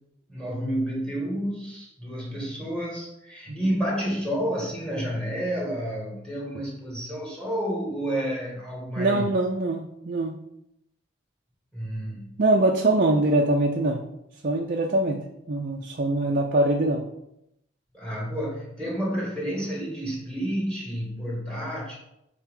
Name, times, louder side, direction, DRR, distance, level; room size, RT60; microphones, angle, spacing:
voice 1, 0.3-9.3 11.7-12.3 17.9-21.9, equal, 5° left, -3 dB, 2.0 m, -30 dB
voice 2, 9.0-10.4 12.4-14.0 14.4-17.0, right 2 dB, 45° right, 1 dB, 0.5 m, -23 dB
7.3 x 4.2 x 3.7 m, 0.82 s
head